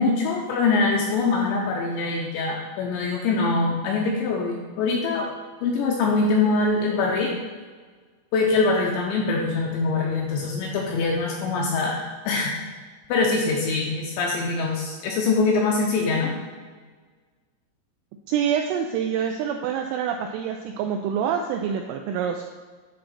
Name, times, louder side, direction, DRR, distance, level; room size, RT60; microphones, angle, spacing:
voice 1, 0.0-5.3 5.6-7.3 8.3-12.6 13.1-16.3, left 3 dB, 80° left, -1 dB, 2.7 m, -23 dB
voice 2, 18.3-22.4, right 8 dB, 85° right, 3 dB, 2.7 m, -26 dB
10.0 x 3.8 x 5.8 m, 1.5 s
omnidirectional pair, 6.0 m